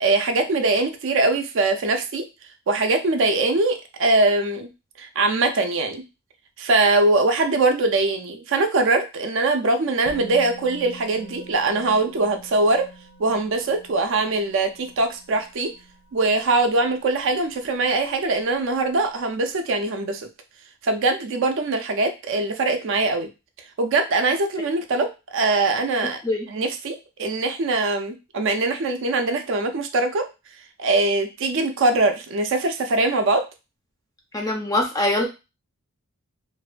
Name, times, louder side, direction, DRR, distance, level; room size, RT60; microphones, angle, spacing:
voice 1, 0.0-2.2 2.7-4.7 5.0-6.0 6.6-12.9 13.2-15.7 16.1-20.3 20.8-23.3 23.8-26.2 26.5-30.3 30.8-33.4, right 2 dB, 55° right, 7 dB, 0.4 m, -22 dB
Musical instrument, 10.1-18.0 18.2-18.4, right 1 dB, 90° left, 0.6 m, -45 dB
voice 2, 34.3-35.3, left 1 dB, 15° left, 2 dB, 0.3 m, -23 dB
2.5 x 2.1 x 2.4 m, 0.27 s
head